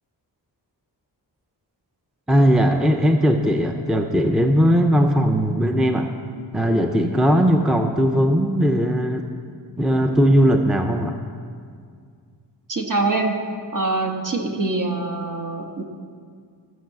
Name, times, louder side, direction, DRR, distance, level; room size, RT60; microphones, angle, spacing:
voice 1, 2.3-6.1 6.5-9.3 9.8-11.2, equal, ahead, 5 dB, 0.5 m, -18 dB
voice 2, 12.7-13.4 13.7-15.8, right 3 dB, 50° right, 2 dB, 1.5 m, -24 dB
14.0 x 6.9 x 7.6 m, 2.1 s
wide cardioid pair, 125°, 42 cm